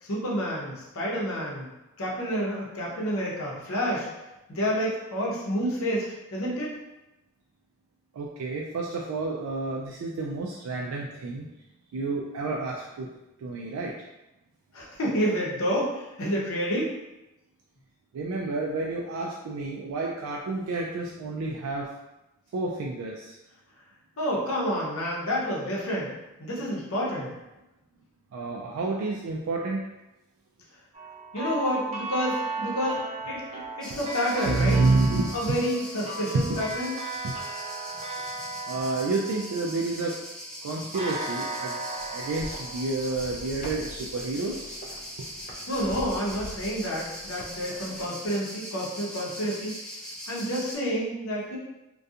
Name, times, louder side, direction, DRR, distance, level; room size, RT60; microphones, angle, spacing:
voice 1, 0.0-1.7 2.0-4.1 4.5-6.1 6.3-6.8 14.7-16.9 24.2-26.1 26.4-27.3 31.3-34.8 35.3-37.0 45.7-49.8 50.3-51.6, equal, 75° left, -4 dB, 0.7 m, -29 dB
voice 2, 8.1-11.5 11.9-13.1 13.4-13.9 18.1-21.9 22.5-23.3 28.3-29.8 33.9-34.0 34.4-35.3 36.3-36.6 37.2-37.3 38.7-40.2 40.6-41.8 42.1-44.9 45.2-45.3, right 3 dB, 90° right, -2 dB, 0.3 m, -29 dB
sound 1, 30.9-40.2 40.9-43.8, right 3 dB, 30° right, 0.5 m, -36 dB
sound 2, 33.8-50.7, equal, 5° left, 0.8 m, -41 dB
sound 3, 42.0-48.1, equal, 35° left, 0.3 m, -44 dB
2.4 x 2.2 x 2.6 m, 0.98 s
head